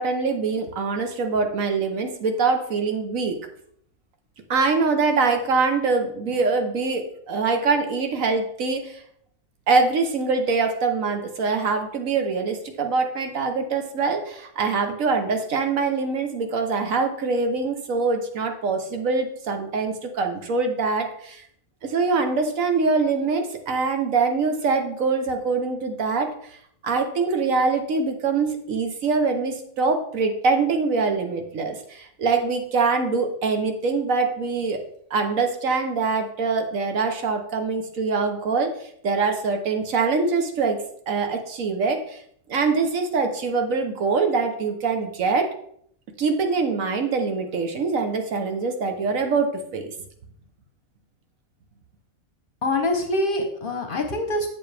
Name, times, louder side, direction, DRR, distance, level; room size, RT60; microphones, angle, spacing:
voice 1, 0.0-3.4 4.5-9.0 9.7-21.4 21.8-26.3 26.8-34.8 35.1-40.8 41.1-42.2 42.5-45.5 46.2-49.9, right 4 dB, 70° right, 5 dB, 1.4 m, -24 dB
voice 2, 52.6-54.5, left 1 dB, 45° left, 5 dB, 0.9 m, -24 dB
7.5 x 7.4 x 3.4 m, 0.66 s
omnidirectional pair, 1.5 m